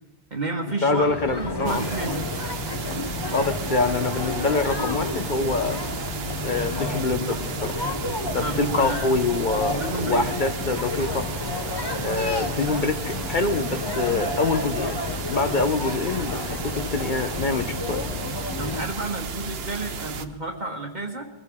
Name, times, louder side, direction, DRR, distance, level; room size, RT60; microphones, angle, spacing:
voice 1, 0.3-1.1 1.3-2.2 8.4-9.1 9.6-10.3 18.6-21.3, right 2 dB, 45° right, 2 dB, 1.3 m, -30 dB
voice 2, 0.8-1.8 3.3-5.8 6.4-7.8 8.3-11.3 12.0-15.0 15.3-18.0, left 3 dB, 50° left, 8 dB, 1.0 m, -25 dB
sound 1, 0.9-18.9, left 2 dB, 25° left, 0.7 m, -31 dB
sound 2, 1.6-20.2, right 4 dB, 70° right, 1.0 m, -34 dB
23.0 x 15.0 x 3.7 m, 1.1 s
omnidirectional pair, 1.1 m